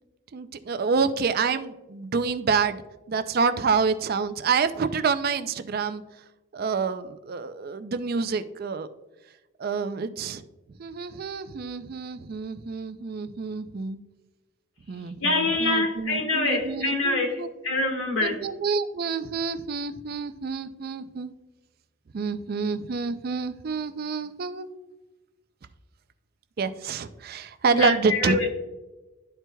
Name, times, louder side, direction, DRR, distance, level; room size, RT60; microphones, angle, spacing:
voice 1, 0.3-2.8 3.1-6.0 6.5-8.9 9.6-10.4 10.8-14.0 14.9-17.5 18.2-21.3 22.1-24.7 26.6-28.4, right 5 dB, 45° right, 11 dB, 0.4 m, -28 dB
voice 2, 15.2-18.5 27.7-28.5, left 2 dB, 65° left, 3 dB, 1.5 m, -25 dB
12.0 x 4.5 x 2.2 m, 1.1 s
head